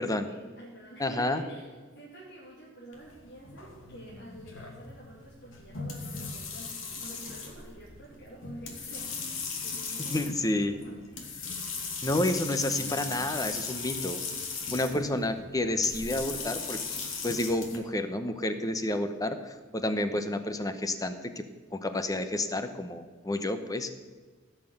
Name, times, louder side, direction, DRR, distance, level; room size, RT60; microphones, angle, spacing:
voice 1, 0.0-6.7 7.0-10.9 14.6-14.8, right 1 dB, 55° left, -6 dB, 2.7 m, -48 dB
voice 2, 1.0-1.4 10.0-10.8 12.0-14.2 14.7-16.8 17.2-21.4 21.7-24.0, left 1 dB, 20° left, 9 dB, 0.9 m, -30 dB
sound 1, 2.9-17.8, left 4 dB, 85° left, 2.5 m, -38 dB
16.5 x 5.9 x 7.9 m, 1.4 s
head